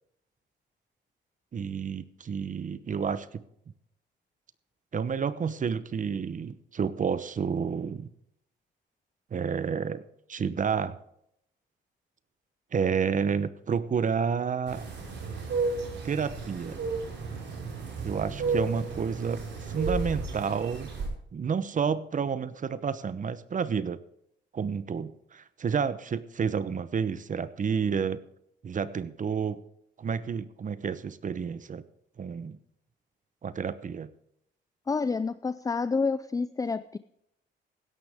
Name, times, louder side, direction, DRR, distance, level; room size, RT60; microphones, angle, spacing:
voice 1, 1.5-3.4 4.9-8.1 9.3-10.0 10.3-11.0 12.7-14.8 16.0-16.8 18.0-19.4 19.7-20.9 21.3-24.0 24.5-28.2 28.6-29.6 30.0-31.8 32.2-32.6 33.4-34.1, right 6 dB, 40° right, 15 dB, 0.9 m, -30 dB
sound 1, 14.7-21.1, right 3 dB, 65° right, 5.3 m, -33 dB
voice 2, 34.9-37.0, left 4 dB, 15° left, 14 dB, 0.5 m, -28 dB
16.5 x 11.5 x 3.6 m, 0.74 s
cardioid pair, 90°, 20 cm